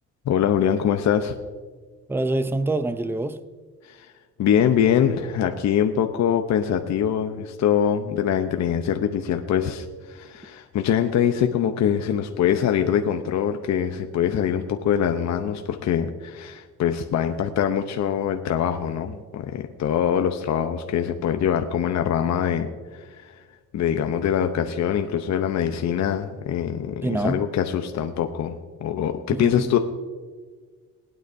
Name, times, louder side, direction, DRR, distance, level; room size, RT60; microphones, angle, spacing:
voice 1, 0.3-1.4 3.8-4.1 4.4-23.4 23.7-29.8, left 9 dB, 65° left, 6 dB, 0.7 m, -23 dB
voice 2, 2.1-3.4 27.0-27.5 29.3-29.7, right 2 dB, 10° right, 12 dB, 0.5 m, -25 dB
20.0 x 9.2 x 2.7 m, 1.5 s
cardioid pair, 90°, 30 cm